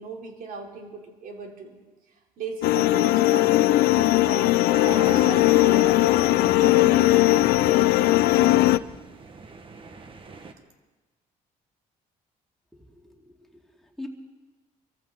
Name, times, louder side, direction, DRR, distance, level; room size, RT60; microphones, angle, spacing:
voice 1, 0.0-1.8 2.4-6.2 6.6-9.0, right 4 dB, 65° right, 0 dB, 3.3 m, -37 dB
sound 1, 2.6-8.8, left 17 dB, 85° left, 0.5 m, -19 dB
sound 2, 4.7-10.5, right 4 dB, 35° right, 1.5 m, -40 dB
voice 2, 12.7-14.1, left 2 dB, ahead, 0 dB, 2.5 m, -44 dB
24.5 x 14.5 x 3.9 m, 1.2 s
cardioid pair, 105°, 16 cm